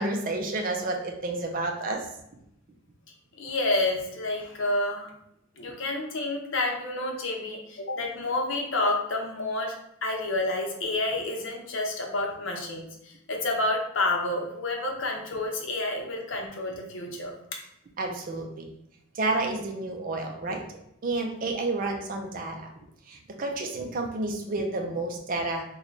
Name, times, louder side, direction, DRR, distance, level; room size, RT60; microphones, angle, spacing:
voice 1, 0.0-2.1 18.0-18.7 19.1-20.6 21.0-22.7 23.1-25.6, right 2 dB, 40° right, 2 dB, 0.4 m, -30 dB
voice 2, 3.4-5.1 5.6-9.7 10.0-17.4 21.4-21.5, left 2 dB, 65° left, 1 dB, 0.7 m, -29 dB
3.1 x 2.2 x 3.8 m, 0.78 s
head